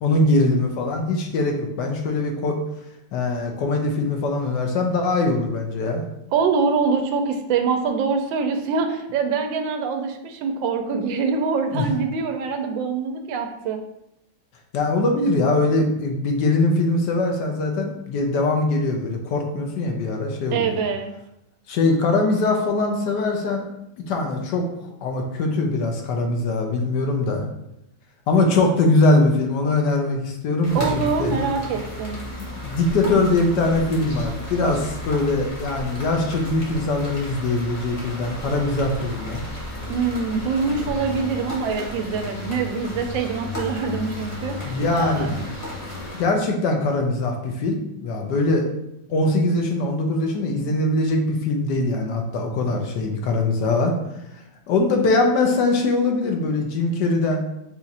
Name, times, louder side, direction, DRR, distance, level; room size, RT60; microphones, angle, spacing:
voice 1, 0.0-2.6 3.1-6.0 11.7-11.9 14.7-20.8 21.7-23.7 24.1-24.7 25.0-27.4 28.3-31.3 32.4-39.4 44.6-45.3 46.1-48.7 49.1-53.9 54.7-57.4, left 2 dB, 70° left, 2 dB, 1.2 m, -22 dB
voice 2, 6.3-13.8 20.5-21.1 30.7-32.2 39.9-45.3, right 5 dB, 85° right, 6 dB, 1.3 m, -24 dB
sound 1, 30.6-46.2, left 1 dB, 30° left, 0.8 m, -33 dB
4.3 x 2.5 x 4.0 m, 0.83 s
omnidirectional pair, 2.0 m